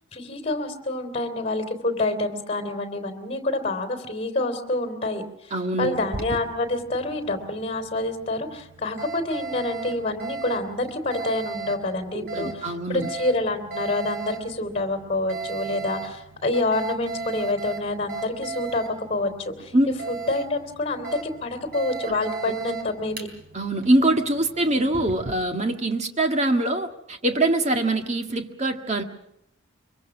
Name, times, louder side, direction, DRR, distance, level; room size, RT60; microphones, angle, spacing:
voice 1, 0.1-19.7 20.1-23.2, left 2 dB, 30° left, 8 dB, 3.3 m, -27 dB
voice 2, 5.5-6.0 12.1-13.1 19.7-19.9 22.1-22.2 23.5-29.0, right 1 dB, 35° right, 5 dB, 1.7 m, -23 dB
Alarm, 5.9-25.3, right 4 dB, 50° right, 3.7 m, -37 dB
24.5 x 24.0 x 6.1 m, 0.80 s
head